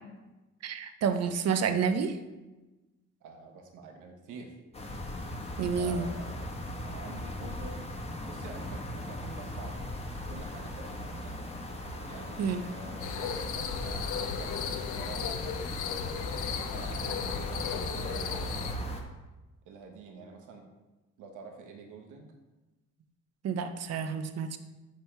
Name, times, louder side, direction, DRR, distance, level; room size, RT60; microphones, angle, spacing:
voice 1, 0.6-2.2 5.6-6.1 12.4-12.6 23.4-24.6, right 6 dB, 55° right, 9 dB, 0.7 m, -29 dB
voice 2, 3.2-4.5 5.7-6.4 6.8-7.9 8.2-9.8 10.3-11.5 12.1-15.6 16.2-19.0 19.6-20.7 21.2-22.3, right 4 dB, 85° right, 3 dB, 1.1 m, -47 dB
sound 1, 4.7-19.0, left 1 dB, 20° left, 1.1 m, -39 dB
sound 2, 13.0-18.7, left 7 dB, 80° left, 0.7 m, -35 dB
6.0 x 5.4 x 4.5 m, 1.1 s
cardioid pair, 90°, 30 cm